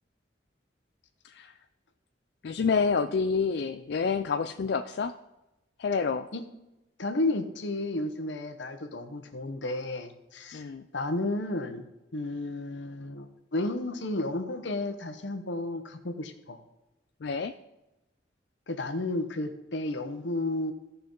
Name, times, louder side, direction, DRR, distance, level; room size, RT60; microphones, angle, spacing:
voice 1, 2.4-5.1 5.8-6.3 10.5-10.8 17.2-17.5, left 5 dB, 60° left, 7 dB, 0.4 m, -28 dB
voice 2, 7.0-10.6 10.9-11.9 12.1-16.6 18.7-20.7, left 2 dB, 80° left, 8 dB, 1.0 m, -32 dB
16.0 x 5.5 x 3.9 m, 0.98 s
head